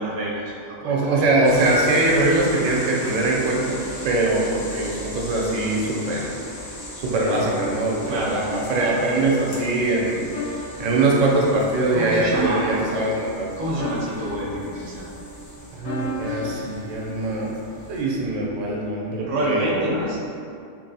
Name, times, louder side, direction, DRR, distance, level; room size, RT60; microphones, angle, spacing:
voice 1, 0.0-1.2 8.1-8.3 11.9-12.9 13.6-15.1 19.2-20.2, right 1 dB, 45° right, -5 dB, 0.4 m, -27 dB
voice 2, 0.8-3.8 4.0-6.4 7.0-10.2 10.8-13.5 15.8-17.6 17.9-19.9, right 2 dB, 90° right, -3 dB, 1.0 m, -22 dB
sound 1, 1.4-18.0, equal, 40° left, 0.6 m, -38 dB
sound 2, 5.9-18.9, left 2 dB, 80° left, 1.0 m, -37 dB
3.0 x 2.6 x 2.6 m, 2.4 s
omnidirectional pair, 1.3 m